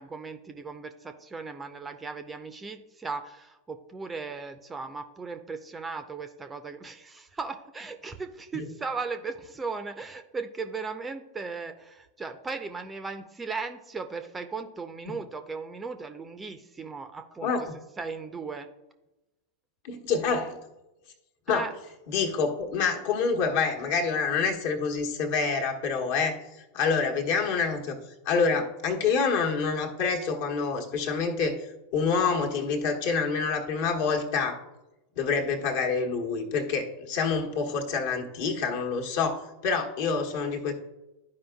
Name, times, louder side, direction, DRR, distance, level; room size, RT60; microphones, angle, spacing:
voice 1, 0.0-18.7 21.5-21.7, right 4 dB, 15° right, 8 dB, 0.5 m, -37 dB
voice 2, 17.4-17.8 19.8-20.6 21.5-21.6 22.1-26.4 26.7-28.0 28.2-31.6 31.9-34.6 35.2-40.7, left 5 dB, 50° left, 2 dB, 1.2 m, -27 dB
12.5 x 5.0 x 2.3 m, 0.99 s
figure-of-eight pair, 90°, 0 cm